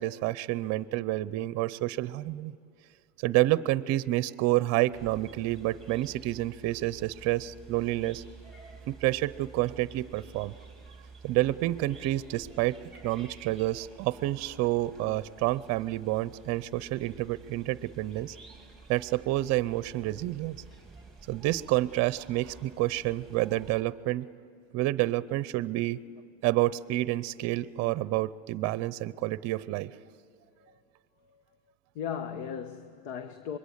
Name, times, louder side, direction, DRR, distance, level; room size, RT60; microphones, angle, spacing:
voice 1, 0.0-2.5 3.2-8.2 8.9-10.5 11.2-12.8 13.0-18.4 18.9-20.6 21.3-24.3 24.7-26.0 26.4-29.9, right 16 dB, 45° right, 17 dB, 0.7 m, -29 dB
sound 1, 4.9-23.8, right 4 dB, ahead, 3.4 m, -51 dB
voice 2, 31.9-33.6, left 8 dB, 65° left, 10 dB, 1.3 m, -37 dB
26.0 x 22.0 x 8.1 m, 2.5 s
supercardioid pair, 120°, 37 cm